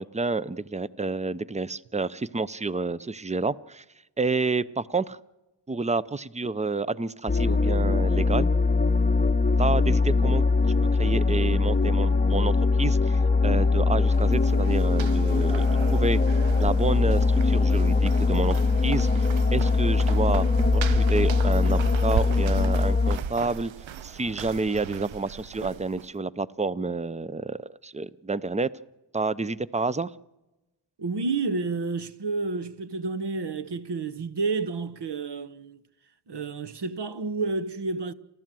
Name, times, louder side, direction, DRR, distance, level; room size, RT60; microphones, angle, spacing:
voice 1, 0.0-3.8 4.2-5.2 5.7-8.5 9.6-15.6 15.9-16.2 16.6-19.3 19.5-20.5 20.7-23.7 24.0-28.7 29.1-30.1, right 3 dB, 15° right, 0.6 m, -29 dB
sound 1, 7.3-23.2, left 4 dB, 20° left, 0.8 m, -22 dB
sound 2, 14.0-26.1, right 9 dB, 75° right, 0.7 m, -37 dB
voice 2, 31.0-35.8 36.3-38.1, right 3 dB, 60° right, 1.1 m, -30 dB
29.5 x 12.5 x 7.6 m
cardioid pair, 65°, 46 cm